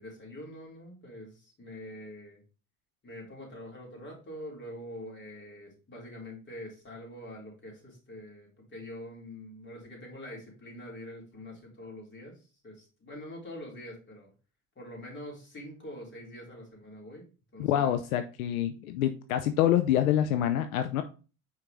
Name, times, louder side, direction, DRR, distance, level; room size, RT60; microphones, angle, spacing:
voice 1, 0.0-2.4 3.0-14.3 14.8-17.3 17.5-18.0, left 1 dB, 25° left, -2 dB, 3.7 m, -45 dB
voice 2, 17.6-21.0, left 11 dB, 75° left, 9 dB, 0.7 m, -26 dB
5.8 x 4.7 x 3.7 m, 0.35 s
hypercardioid pair, 85°, 42 cm